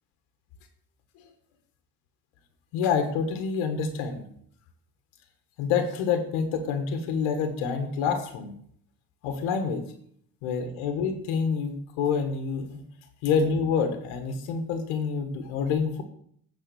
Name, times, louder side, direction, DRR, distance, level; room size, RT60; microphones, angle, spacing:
voice 1, 2.7-4.2 5.6-8.5 9.2-9.8 10.4-12.8 13.2-16.0, left 6 dB, 75° left, 6 dB, 1.6 m, -27 dB
9.2 x 4.3 x 6.9 m, 0.64 s
supercardioid pair, 90°, 48 cm